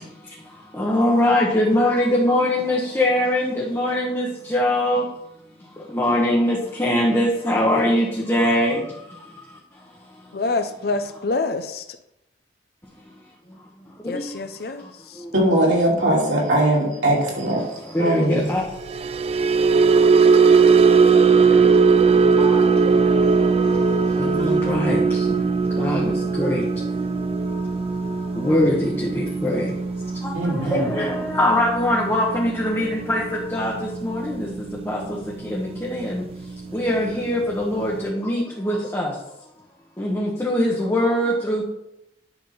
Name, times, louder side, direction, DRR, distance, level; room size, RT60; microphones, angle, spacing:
voice 1, 0.8-4.2 4.5-5.0 6.0-6.5 6.8-8.7 18.0-18.1 18.5-18.6 24.7-24.9 25.8-26.0 26.4-26.5 28.5-28.7 31.0-31.1 31.4-33.2 33.5-33.7 34.9-35.0 36.7-37.9 38.2-38.4 38.7-39.1 40.1-41.6, left 1 dB, 15° left, 1.1 m, -20 dB
voice 2, 10.3-11.8 14.0-14.8, left 3 dB, 55° left, 0.6 m, -26 dB
voice 3, 15.3-17.7 18.0-18.5 30.3-30.9, right 1 dB, 90° right, 3.0 m, -20 dB
sound 1, 18.8-35.2 35.5-35.8 36.1-36.4, right 5 dB, 35° right, 0.3 m, -19 dB
10.5 x 3.7 x 5.6 m
head